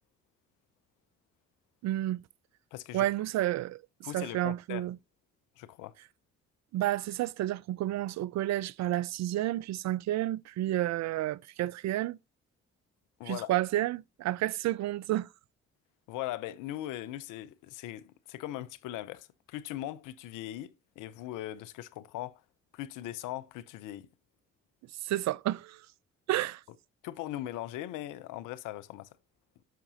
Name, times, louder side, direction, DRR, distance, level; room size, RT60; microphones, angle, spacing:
voice 1, 1.8-2.2 2.9-3.8 4.1-5.0 6.7-12.2 13.3-15.3 25.0-25.8 26.3-26.6, right 14 dB, 60° right, 0.5 m, -30 dB
voice 2, 2.7-3.1 4.0-4.9 5.6-5.9 13.2-13.5 16.1-22.4 22.7-24.1 27.0-29.1, left 14 dB, 75° left, 0.7 m, -40 dB
9.2 x 5.9 x 2.8 m
hypercardioid pair, 50°, 32 cm